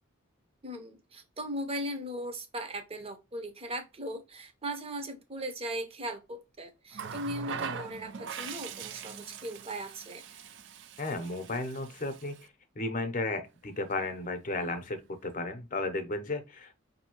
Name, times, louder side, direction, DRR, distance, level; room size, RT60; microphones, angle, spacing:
voice 1, 0.6-10.2, right 1 dB, 30° right, 0.8 m, -38 dB
Water tap faucet, 6.9-12.5 13.7-13.9, right 7 dB, 60° right, 0.4 m, -42 dB
voice 2, 11.0-12.3 12.8-16.7, left 2 dB, 40° left, 0.7 m, -34 dB
5.2 x 2.7 x 2.9 m
head